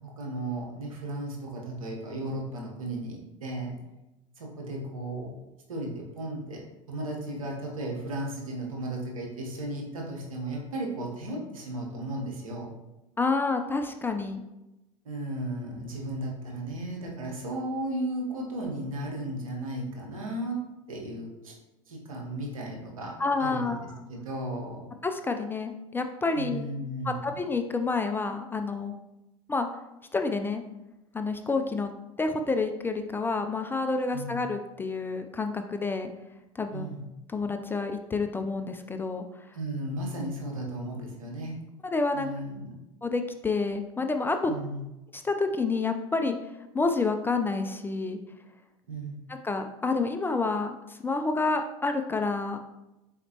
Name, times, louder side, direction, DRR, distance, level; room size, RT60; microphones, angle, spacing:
voice 1, 0.0-3.8 4.4-5.3 5.7-12.7 15.0-20.6 20.9-21.5 21.9-24.8 26.3-27.2 34.1-34.4 36.7-37.1 39.5-41.6 42.1-42.7 44.4-44.8 48.9-49.2, right 1 dB, 80° right, -1 dB, 1.1 m, -35 dB
voice 2, 13.2-14.4 23.2-23.9 25.0-26.7 27.0-28.9 29.5-29.7 30.1-30.6 31.1-31.9 32.2-36.1 36.6-36.9 37.3-39.2 41.8-42.3 43.0-44.5 45.1-46.4 46.7-48.2 49.4-52.6, left 3 dB, 10° left, 6 dB, 0.3 m, -29 dB
4.2 x 4.1 x 2.9 m, 0.96 s
hypercardioid pair, 80°, 17 cm